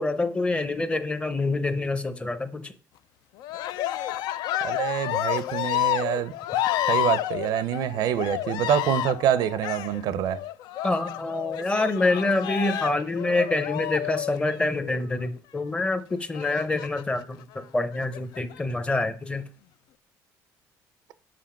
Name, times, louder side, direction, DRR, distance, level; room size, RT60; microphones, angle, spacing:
voice 1, 0.0-2.7 10.8-19.4, left 2 dB, 15° left, 0.7 m, -26 dB
Cheering, 3.4-15.1 16.3-17.2 17.9-18.6, left 13 dB, 75° left, 0.4 m, -30 dB
voice 2, 4.6-6.3 6.9-10.4, right 10 dB, 70° right, 0.5 m, -26 dB
5.5 x 5.1 x 5.7 m
cardioid pair, 130°, 7 cm